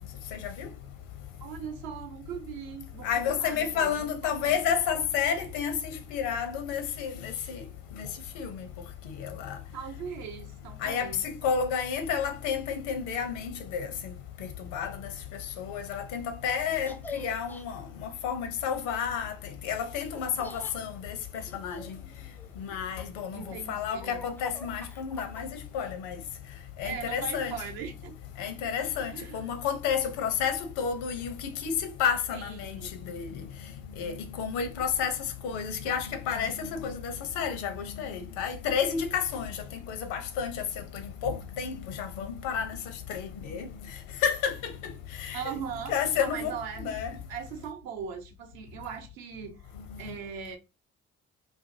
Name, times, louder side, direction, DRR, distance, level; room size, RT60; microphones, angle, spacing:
voice 1, 0.3-0.7 3.0-7.7 7.9-8.1 8.3-8.7 9.1-9.6 10.8-14.1 14.4-15.1 15.6-19.3 19.6-22.0 22.6-26.2 26.8-27.6 28.4-31.7 32.0-32.8 33.0-33.4 34.0-35.2 35.4-42.8 43.1-43.7 44.2-44.9 45.2-45.5 45.9-47.2, left 7 dB, 75° left, 0.7 m, -31 dB
voice 2, 1.4-4.0 4.2-4.6 9.7-11.2 23.3-24.2 26.8-28.1 29.1-29.5 32.3-33.0 45.3-47.0 47.3-49.6 50.0-50.6, right 7 dB, 65° right, 0.8 m, -39 dB
Laughter, 16.9-17.6 20.1-20.8 21.3-22.6 23.2-25.7, left 3 dB, 5° left, 0.3 m, -45 dB
2.5 x 2.5 x 2.6 m
hypercardioid pair, 50°, 38 cm